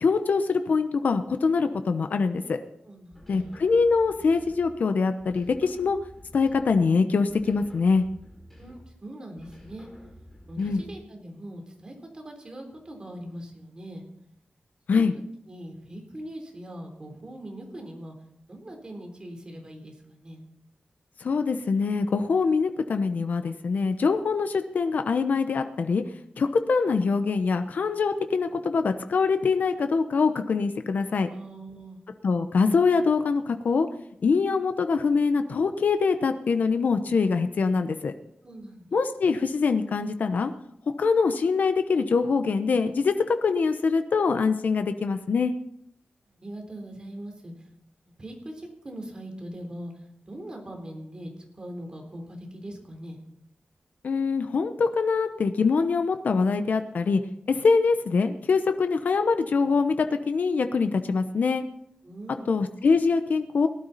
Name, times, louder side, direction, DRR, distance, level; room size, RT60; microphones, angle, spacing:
voice 1, 0.0-2.6 3.3-6.0 6.3-8.0 10.6-10.8 14.9-15.1 21.2-26.0 26.4-31.3 32.2-33.9 34.2-38.1 38.9-40.5 41.0-45.5 54.0-57.2 57.5-61.6 62.5-63.7, left 4 dB, 70° left, 8 dB, 0.9 m, -24 dB
voice 2, 2.9-3.6 8.5-9.9 10.5-14.0 14.9-15.0 15.5-18.2 18.5-20.4 31.2-32.0 38.4-39.0 46.3-47.7 48.0-53.2 62.0-62.5, right 1 dB, 30° right, 3 dB, 3.6 m, -41 dB
sound 1, 3.1-4.8 5.2-6.9 7.3-9.0 9.4-11.1, equal, 5° left, 5.6 m, -50 dB
18.5 x 12.0 x 4.2 m, 0.72 s
wide cardioid pair, 135°, 3 cm